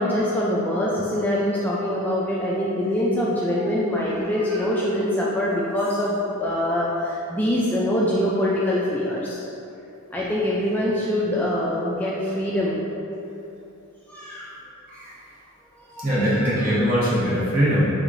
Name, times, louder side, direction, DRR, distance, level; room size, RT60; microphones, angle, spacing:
voice 1, 0.0-9.4 10.1-12.9 14.1-14.5 15.9-16.5, left 1 dB, 10° left, -6 dB, 0.3 m, -24 dB
voice 2, 16.0-17.8, equal, 40° right, -9 dB, 1.2 m, -21 dB
4.8 x 3.6 x 2.5 m, 2.8 s
head